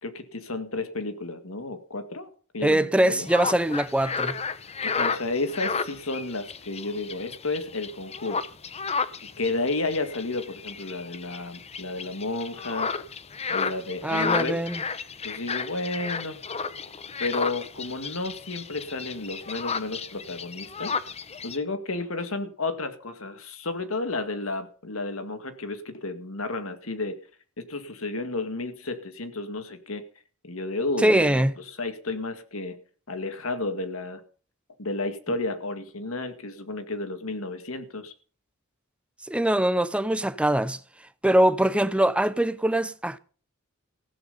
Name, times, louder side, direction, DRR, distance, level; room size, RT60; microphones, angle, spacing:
voice 1, 0.0-3.3 4.8-8.4 9.4-12.9 13.5-14.6 15.2-16.4 17.2-20.9 21.4-27.2 27.6-30.0 30.4-32.8 33.1-34.2 34.8-38.1, left 2 dB, 75° left, 2.1 m, -32 dB
voice 2, 2.6-4.4 14.0-14.8 31.0-31.5 39.3-40.8 41.2-43.2, right 1 dB, 5° right, 0.7 m, -22 dB
sound 1, 3.2-21.6, left 5 dB, 30° left, 0.9 m, -33 dB
15.5 x 10.5 x 5.5 m
head